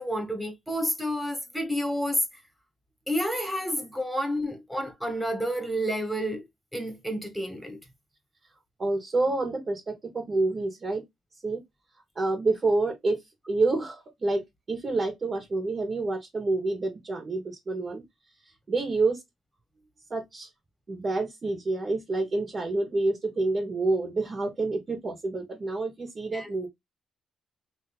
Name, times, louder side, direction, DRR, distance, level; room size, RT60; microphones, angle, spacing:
voice 1, 0.0-2.2 3.1-6.4 6.7-7.8 26.3-26.5, equal, ahead, 1.7 m, -30 dB
voice 2, 8.8-11.0 11.4-11.6 12.1-13.2 13.5-14.4 14.7-18.0 18.7-19.2 20.1-20.5 20.9-26.7, right 3 dB, 35° right, 1.5 m, -28 dB
3.1 x 2.8 x 4.3 m
cardioid pair, 90°, 0 cm